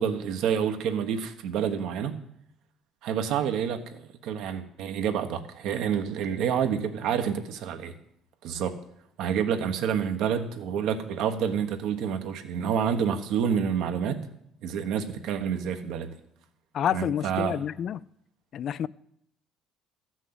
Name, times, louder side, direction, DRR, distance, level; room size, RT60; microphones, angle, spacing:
voice 1, 0.0-2.2 3.0-7.9 8.4-8.7 9.2-14.3 14.6-16.2 16.9-17.7, right 8 dB, 75° right, 1.2 m, -28 dB
voice 2, 16.7-18.0 18.5-18.9, left 9 dB, 55° left, 0.4 m, -28 dB
13.5 x 6.3 x 7.8 m
supercardioid pair, 90°, 0 cm